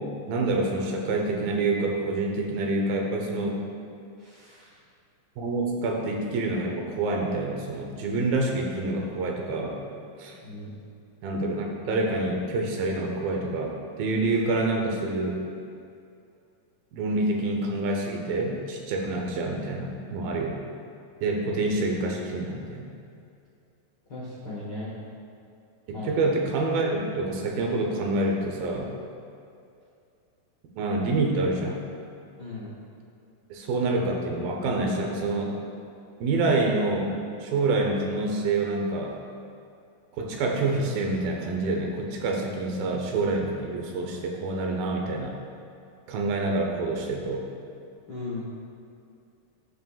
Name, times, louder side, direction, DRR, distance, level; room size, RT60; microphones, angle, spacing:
voice 1, 0.3-3.6 5.4-9.8 10.2-10.3 11.2-15.4 16.9-20.6 21.2-22.9 25.9-28.9 30.8-31.8 33.5-35.5 36.2-39.2 40.2-45.3 46.1-47.4, right 2 dB, 80° right, 1 dB, 2.7 m, -27 dB
voice 2, 4.2-4.7 10.3-10.7 24.1-24.9 25.9-26.1 32.4-32.7 48.1-48.5, left 2 dB, 80° left, -7 dB, 1.0 m, -37 dB
16.5 x 5.7 x 2.4 m, 2.5 s
omnidirectional pair, 4.2 m